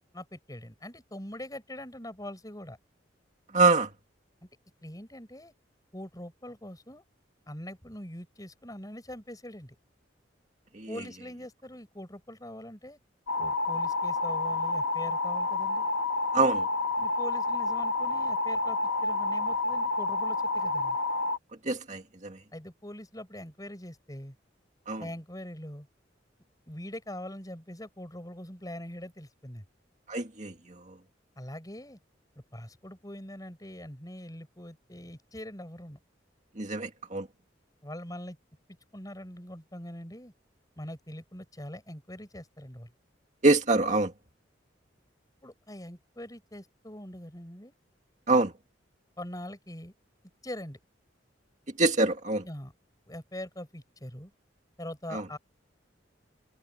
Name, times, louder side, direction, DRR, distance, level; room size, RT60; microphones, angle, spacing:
voice 1, 0.1-2.8 4.8-5.5 5.9-7.0 7.5-9.8 10.9-13.0 13.4-15.9 17.0-21.0 22.5-24.4 25.0-25.9 26.7-29.6 31.4-32.0 32.5-36.0 37.8-38.4 38.9-40.3 40.8-42.9 45.4-47.7 49.2-49.9 50.4-50.8 52.4-52.7 53.1-54.3 54.8-55.4, left 1 dB, 20° left, 7.0 m, -43 dB
voice 2, 3.5-3.9 10.7-10.9 16.3-16.7 21.7-22.4 24.9-25.0 30.1-30.5 36.6-37.3 43.4-44.1 48.3-48.5 51.8-52.4 55.1-55.2, right 3 dB, 40° right, 2.0 m, -25 dB
sound 1, 13.3-21.4, left 2 dB, 90° left, 2.0 m, -29 dB
head